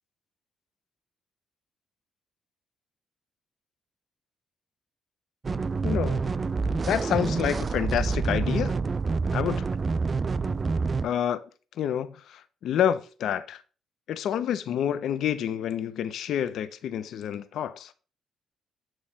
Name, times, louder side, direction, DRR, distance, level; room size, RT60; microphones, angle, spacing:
sound 1, 5.4-11.1, right 4 dB, 35° right, 0.3 m, -27 dB
voice 1, 5.8-6.2 6.7-8.7 9.3-9.7 11.0-11.4 11.8-13.6 14.1-17.9, left 9 dB, 75° left, 0.7 m, -28 dB
9.1 x 3.2 x 5.6 m
cardioid pair, 90°, 0 cm